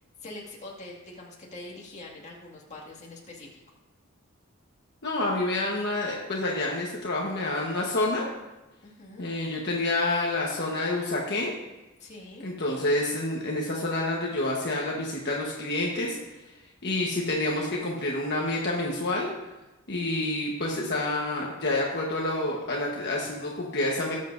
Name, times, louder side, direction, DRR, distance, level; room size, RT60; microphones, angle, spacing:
voice 1, 0.2-3.6 8.8-9.3 12.0-12.5, left 2 dB, 35° left, -2 dB, 2.0 m, -44 dB
voice 2, 5.0-8.3 9.2-11.6 12.4-16.2 16.8-19.3 19.9-24.2, left 2 dB, 55° left, -2 dB, 1.2 m, -28 dB
19.0 x 7.5 x 2.6 m, 1.1 s
head